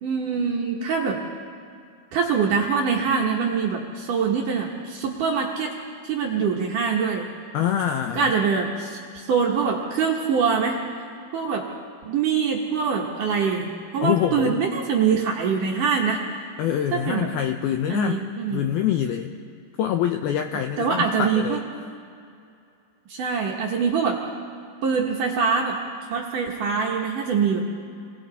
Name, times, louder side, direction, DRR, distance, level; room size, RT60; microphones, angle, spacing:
voice 1, 0.0-1.2 2.1-5.7 6.0-7.3 8.2-10.8 11.3-11.7 12.1-13.7 13.9-16.2 16.9-17.3 17.9-18.6 20.8-21.6 23.1-24.2 24.8-25.8 26.1-27.6, right 6 dB, 65° right, -1 dB, 2.3 m, -24 dB
voice 2, 7.5-8.3 14.0-14.6 16.6-18.2 18.5-19.3 19.8-21.7, left 10 dB, 90° left, 5 dB, 2.2 m, -25 dB
29.0 x 21.5 x 4.2 m, 2.4 s
omnidirectional pair, 5.4 m